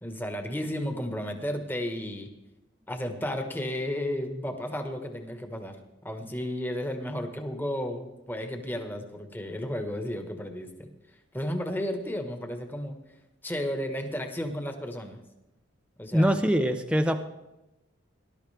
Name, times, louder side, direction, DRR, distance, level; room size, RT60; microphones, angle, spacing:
voice 1, 0.0-2.3 2.9-5.8 6.0-10.9 11.3-13.0 13.4-15.2 16.0-16.4, left 1 dB, 10° left, 5 dB, 1.4 m, -33 dB
voice 2, 16.1-17.2, equal, 5° right, 6 dB, 0.6 m, -23 dB
19.0 x 12.0 x 3.4 m, 0.95 s
head